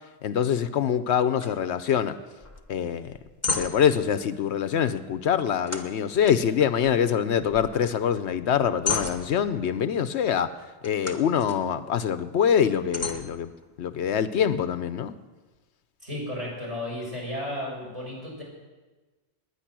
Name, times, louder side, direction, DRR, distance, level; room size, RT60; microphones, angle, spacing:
voice 1, 0.2-2.1 2.7-3.1 3.6-10.5 10.8-13.5 13.8-15.1, left 8 dB, 75° left, 12 dB, 0.9 m, -24 dB
sound 1, 1.4-1.6 1.9-2.0 2.4-2.7 3.1-4.0 5.7-7.1 7.4-7.9 8.3-9.7 10.8-11.6 12.2-12.3 12.9-14.0, left 4 dB, 15° left, 1.2 m, -33 dB
voice 2, 16.0-18.4, left 1 dB, 30° right, -4 dB, 6.3 m, -33 dB
20.0 x 9.9 x 6.1 m, 1.2 s
omnidirectional pair, 1.2 m